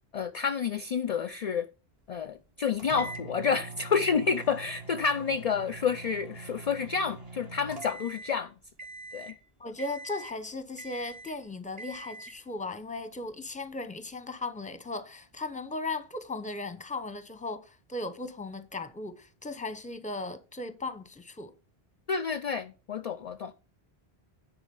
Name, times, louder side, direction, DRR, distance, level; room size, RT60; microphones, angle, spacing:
voice 1, 0.1-1.7 2.1-8.5 9.1-9.4 22.1-23.5, left 6 dB, 50° left, 0.5 m, -29 dB
sound 1, 2.8-8.4 8.8-9.4 9.8-10.4 10.8-11.4 11.8-12.4, right 3 dB, 35° right, 1.3 m, -44 dB
voice 2, 9.6-21.5, left 2 dB, 10° left, 0.7 m, -37 dB
9.6 x 4.0 x 6.8 m
omnidirectional pair, 1.1 m